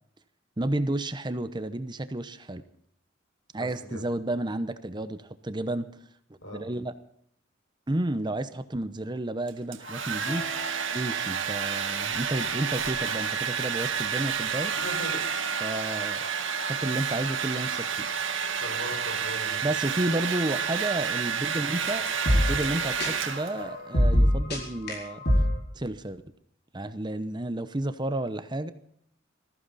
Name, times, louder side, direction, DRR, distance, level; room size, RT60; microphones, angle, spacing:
voice 1, 0.6-2.6 3.5-5.9 6.5-6.9 7.9-10.5 10.9-14.8 15.6-16.2 16.6-18.1 19.6-25.2 25.7-26.2 26.7-28.7, right 1 dB, 20° right, 11 dB, 0.8 m, -31 dB
voice 2, 3.5-4.0 6.4-6.6 14.8-15.3 18.6-19.7, left 1 dB, 75° left, 3 dB, 5.3 m, -38 dB
Domestic sounds home sounds, 9.5-23.8, right 7 dB, 70° right, 1.9 m, -30 dB
sound 1, 9.8-25.6, equal, 55° left, 4.8 m, -31 dB
20.0 x 15.0 x 4.1 m, 0.67 s
head